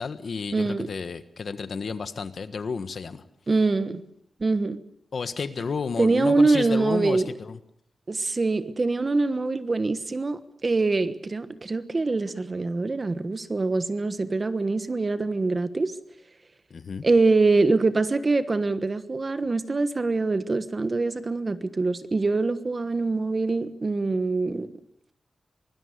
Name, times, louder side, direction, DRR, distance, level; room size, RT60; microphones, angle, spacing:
voice 1, 0.0-3.2 5.1-7.6 16.7-17.0, left 5 dB, 60° left, 1.4 m, -32 dB
voice 2, 0.5-0.9 3.5-4.0 4.4-4.8 6.0-7.3 8.1-15.9 17.0-24.7, right 3 dB, 35° right, 1.3 m, -24 dB
25.0 x 20.0 x 6.7 m
wide cardioid pair, 125°, 0 cm